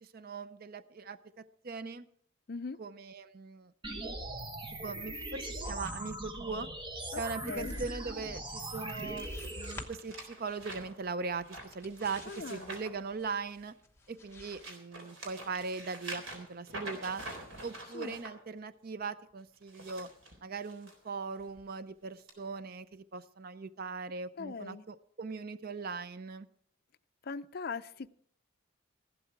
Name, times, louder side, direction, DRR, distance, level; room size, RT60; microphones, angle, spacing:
voice 1, 0.0-2.0 2.8-3.7 4.8-6.7 7.2-9.3 9.6-13.7 14.1-17.2 17.6-20.1 20.4-26.5, right 4 dB, 45° right, 14 dB, 0.5 m, -40 dB
sound 1, 3.8-9.8, right 1 dB, 20° right, 1.2 m, -40 dB
sound 2, 4.2-14.6, left 2 dB, 10° left, 1.0 m, -54 dB
sound 3, 7.6-13.8 14.2-18.3 19.5-20.9 21.4-21.6 22.3-22.4, right 2 dB, 70° right, 3.9 m, -47 dB
voice 2, 12.3-12.7 17.9-18.2 24.4-24.8 27.2-28.1, left 4 dB, 45° left, 11 dB, 0.5 m, -40 dB
15.0 x 12.0 x 4.6 m, 0.65 s
head